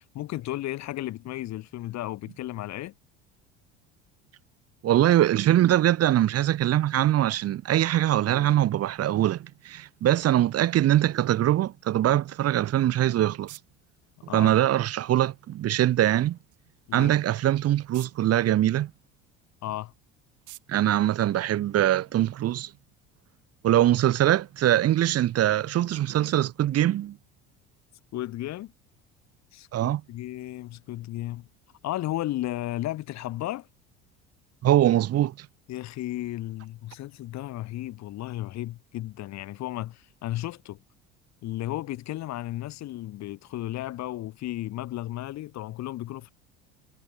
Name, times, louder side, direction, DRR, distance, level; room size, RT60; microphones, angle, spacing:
voice 1, 0.0-2.9 14.3-14.5 16.9-17.1 19.6-19.9 28.1-28.7 29.5-31.5 31.8-33.7 35.7-40.8 41.4-46.3, left 15 dB, 60° left, 2.2 m, -34 dB
voice 2, 4.8-13.6 14.3-16.4 16.9-18.9 20.7-22.7 23.6-27.2 29.7-30.0 34.6-35.5, right 12 dB, 50° right, 1.5 m, -22 dB
sound 1, 12.7-22.1, right 19 dB, 70° right, 7.6 m, -56 dB
supercardioid pair, 85°, 32 cm